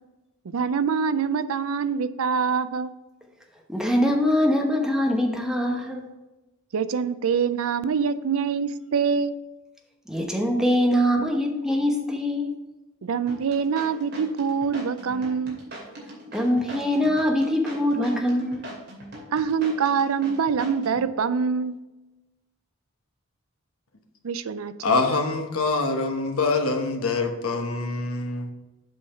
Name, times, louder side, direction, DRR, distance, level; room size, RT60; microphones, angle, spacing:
voice 1, 0.5-2.9 6.7-9.3 13.0-15.6 19.3-21.8 24.2-25.0, right 6 dB, 75° right, 13 dB, 0.5 m, -25 dB
voice 2, 3.7-6.0 10.1-12.5 16.3-18.7, equal, 5° right, 1 dB, 1.0 m, -23 dB
sound 1, 13.3-21.1, right 1 dB, 55° right, 2.6 m, -40 dB
voice 3, 24.8-28.5, left 3 dB, 80° left, 4 dB, 1.1 m, -25 dB
7.7 x 5.5 x 4.4 m, 1.0 s
head